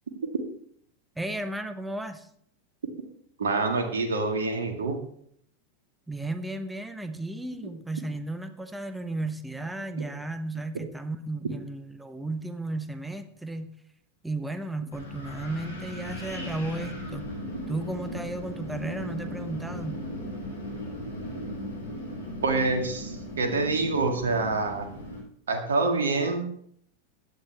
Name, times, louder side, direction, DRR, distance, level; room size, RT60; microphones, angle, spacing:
voice 1, 1.2-2.3 6.1-13.7 14.2-17.3 17.7-20.0, right 2 dB, 5° right, 9 dB, 1.0 m, -34 dB
voice 2, 3.4-5.0 22.4-24.9 25.5-26.7, right 3 dB, 65° right, 4 dB, 2.0 m, -26 dB
Wind, 14.9-25.2, left 1 dB, 75° left, 6.2 m, -37 dB
15.5 x 9.9 x 3.4 m, 0.66 s
figure-of-eight pair, 90°, 0 cm